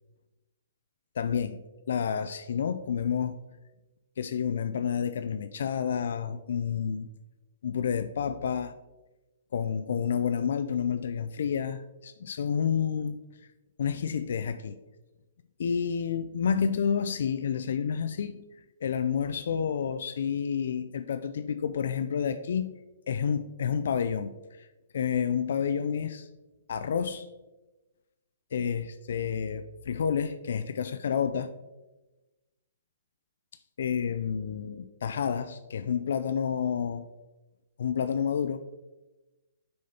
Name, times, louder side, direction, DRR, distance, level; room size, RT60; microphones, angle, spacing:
voice 1, 1.2-1.6 1.9-3.4 4.2-7.1 7.6-8.7 9.5-13.2 13.8-14.8 15.6-18.4 18.8-22.7 23.1-24.7 24.9-26.3 26.7-27.3 28.5-31.5 33.8-37.0 37.8-38.6, left 7 dB, 70° left, 11 dB, 0.3 m, -29 dB
6.2 x 5.5 x 2.8 m, 1.1 s
hypercardioid pair, 140°, 0 cm